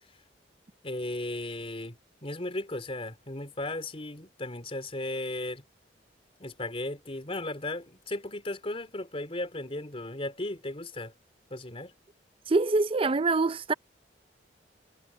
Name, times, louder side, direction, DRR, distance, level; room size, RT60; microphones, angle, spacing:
voice 1, 0.8-5.6 6.4-11.1 11.5-11.9, left 2 dB, 30° left, 3.5 m, -36 dB
voice 2, 12.5-13.7, right 3 dB, 30° right, 0.5 m, -25 dB
head